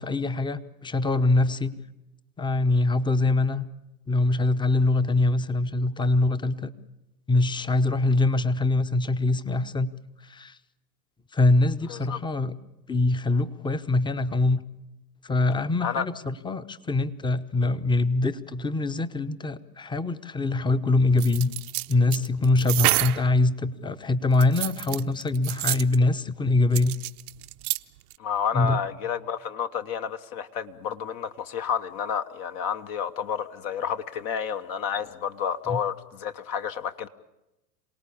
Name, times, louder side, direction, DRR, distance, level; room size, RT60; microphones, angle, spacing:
voice 1, 0.0-1.7 2.4-3.6 4.1-6.7 7.3-9.9 10.2-10.6 11.3-12.6 12.9-14.6 15.2-21.5 21.9-27.0 28.5-28.8 35.7-35.8, left 2 dB, 10° left, 13 dB, 0.9 m, -23 dB
sound 1, 21.2-23.3 24.3-26.0 26.7-27.8 28.1-28.2, right 20 dB, 65° right, 0.8 m, -28 dB
voice 2, 28.2-37.1, left 7 dB, 45° left, 8 dB, 1.1 m, -30 dB
27.0 x 18.5 x 8.6 m, 0.97 s
hypercardioid pair, 95°, 47 cm